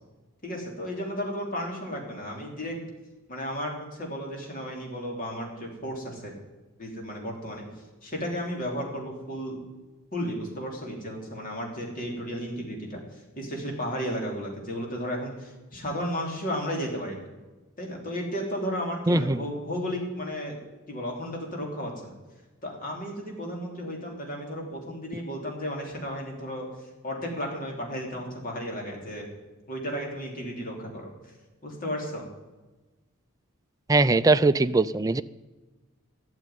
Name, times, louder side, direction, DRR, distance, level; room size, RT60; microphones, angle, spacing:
voice 1, 0.4-2.8 3.3-6.3 6.8-7.6 8.0-9.6 10.1-13.0 13.4-17.2 17.8-20.6 20.9-22.1 22.6-26.7 27.0-29.3 29.7-31.1 31.6-32.3, equal, 40° left, 0 dB, 3.4 m, -33 dB
voice 2, 19.1-19.4 33.9-35.2, right 3 dB, 15° right, 12 dB, 0.4 m, -21 dB
12.5 x 7.5 x 9.4 m, 1.2 s
head